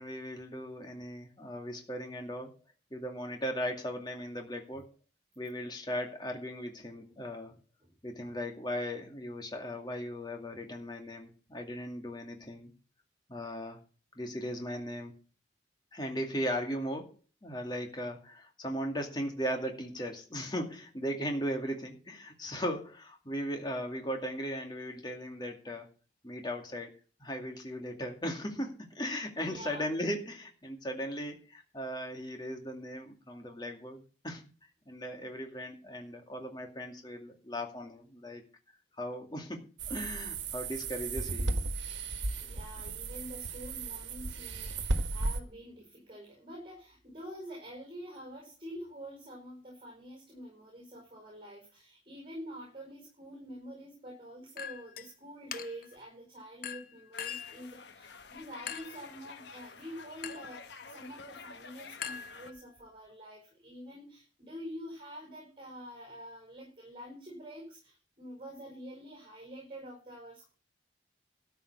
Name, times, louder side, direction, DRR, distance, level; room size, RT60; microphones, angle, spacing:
voice 1, 0.0-2.5 2.9-4.9 5.4-7.5 8.0-12.7 13.3-13.8 14.2-15.2 15.9-17.1 17.4-25.9 26.2-26.9 27.2-34.4 34.9-38.4 39.0-41.6, equal, 25° left, 3 dB, 2.3 m, -37 dB
voice 2, 29.4-29.9 42.3-70.5, equal, 30° right, 0 dB, 4.9 m, -47 dB
sound 1, 39.8-45.4, right 2 dB, 90° right, 1.3 m, -35 dB
Chink clink, 54.6-55.1 55.5-56.0 56.6-57.6 58.7-59.1 60.2-60.6 62.0-62.8, left 8 dB, 50° left, 0.7 m, -41 dB
sound 2, 57.1-62.5, left 5 dB, 75° left, 1.1 m, -50 dB
13.0 x 5.7 x 8.5 m, 0.37 s
head